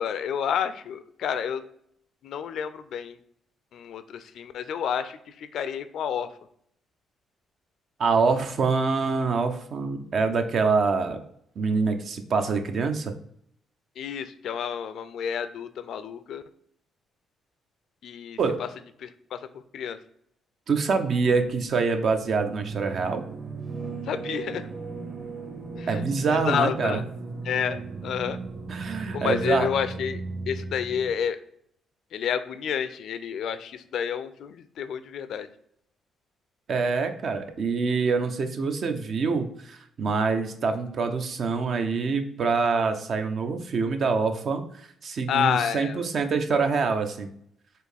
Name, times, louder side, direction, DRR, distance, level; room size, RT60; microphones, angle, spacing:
voice 1, 0.0-1.6 2.2-3.2 3.7-6.3 14.0-16.4 18.0-18.7 19.0-20.0 24.1-24.7 25.7-26.0 26.3-27.0 27.4-28.4 29.1-30.2 30.5-31.4 32.1-35.5 45.3-46.0, left 8 dB, 70° left, 12 dB, 0.3 m, -30 dB
voice 2, 8.0-11.2 11.6-13.1 18.4-18.6 20.7-23.2 25.9-27.0 28.7-29.7 36.7-47.3, right 4 dB, 55° right, 7 dB, 0.6 m, -25 dB
sound 1, 21.1-31.1, right 3 dB, 40° right, 1.3 m, -37 dB
4.3 x 2.6 x 3.3 m, 0.69 s
cardioid pair, 90°, 0 cm